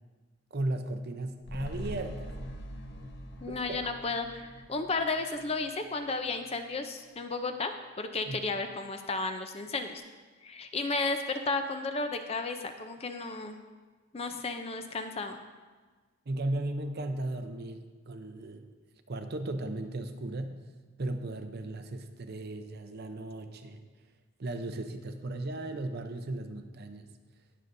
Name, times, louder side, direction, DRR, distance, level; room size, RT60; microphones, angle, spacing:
voice 1, 0.5-2.3 3.5-3.9 8.3-8.4 16.3-18.7 19.1-20.5 21.0-23.8 24.4-27.1, right 2 dB, 45° right, 7 dB, 0.6 m, -36 dB
sound 1, 1.4-6.0 6.3-6.4, equal, 50° left, 0.8 m, -43 dB
voice 2, 3.4-10.0 10.4-13.6 14.1-15.4, left 3 dB, 25° left, 6 dB, 0.5 m, -33 dB
19.0 x 6.8 x 2.6 m, 1.4 s
head